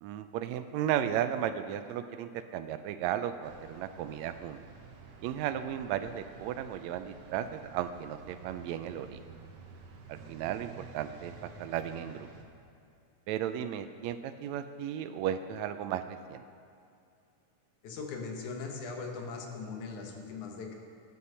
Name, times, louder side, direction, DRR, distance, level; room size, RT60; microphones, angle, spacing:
voice 1, 0.0-4.6 5.2-9.2 10.1-12.3 13.3-16.4, right 10 dB, 80° right, 10 dB, 1.6 m, -35 dB
sound 1, 3.4-12.4, right 4 dB, 65° right, 2.0 m, -51 dB
voice 2, 17.8-20.8, left 4 dB, 75° left, 2 dB, 2.6 m, -40 dB
12.5 x 10.0 x 5.5 m, 2.5 s
omnidirectional pair, 3.5 m